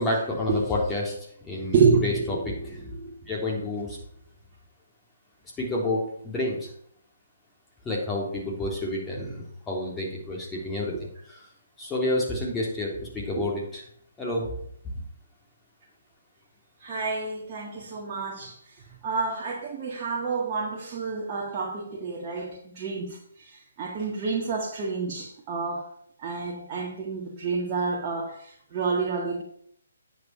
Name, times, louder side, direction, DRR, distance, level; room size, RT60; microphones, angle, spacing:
voice 1, 0.0-2.8 3.3-4.0 5.6-6.7 7.9-10.9 11.3-11.5 11.8-13.8 14.2-14.6 14.8-14.9, left 2 dB, 15° left, 3.5 m, -29 dB
voice 2, 1.7-3.1 13.4-13.5 16.8-25.9 26.2-29.4, right 5 dB, 30° right, 1.8 m, -29 dB
10.0 x 7.6 x 6.0 m
figure-of-eight pair, 140°, 0 cm